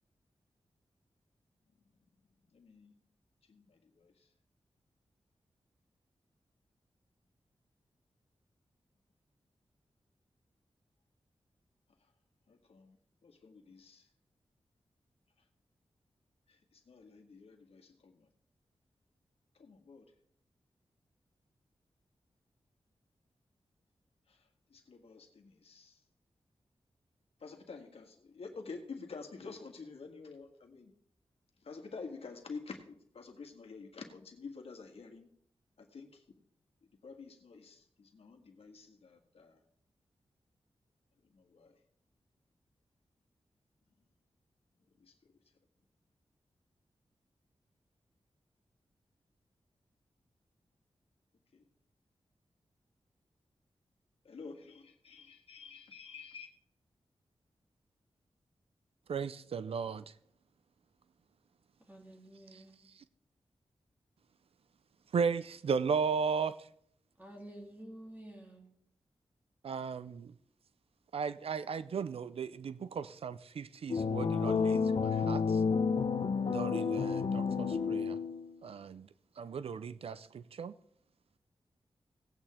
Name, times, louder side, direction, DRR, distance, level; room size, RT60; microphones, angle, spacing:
voice 1, 2.5-2.9 3.5-4.1 12.5-13.0 13.2-14.1 16.5-18.3 19.6-20.1 24.3-24.4 24.7-26.0 27.4-30.9 31.6-35.3 35.8-36.2 37.0-39.6 41.3-41.7 45.0-45.1 51.5-51.6 54.3-56.5, left 4 dB, 75° left, 4 dB, 1.8 m, -49 dB
voice 2, 59.1-60.0 65.1-66.5 69.6-70.3 71.1-75.4 76.4-78.2 78.6-79.1 79.4-80.7, right 6 dB, 75° right, 15 dB, 0.5 m, -35 dB
voice 3, 61.9-62.7 67.2-68.7, right 1 dB, 15° right, 0 dB, 3.4 m, -50 dB
sound 1, 73.9-78.5, left 5 dB, 60° left, 0.9 m, -30 dB
17.0 x 8.8 x 3.7 m, 0.66 s
wide cardioid pair, 120°, 10 cm